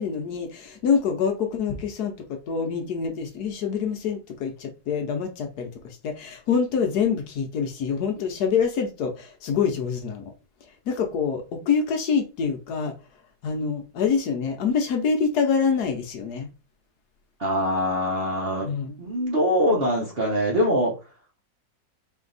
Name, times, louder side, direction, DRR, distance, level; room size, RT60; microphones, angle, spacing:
voice 1, 0.0-10.3 10.9-12.9 13.4-16.5 18.6-19.0, left 6 dB, 65° left, 1.2 m, -26 dB
voice 2, 17.4-18.7 19.0-20.9, equal, 40° right, 0.9 m, -23 dB
4.3 x 2.8 x 3.9 m
omnidirectional pair, 1.9 m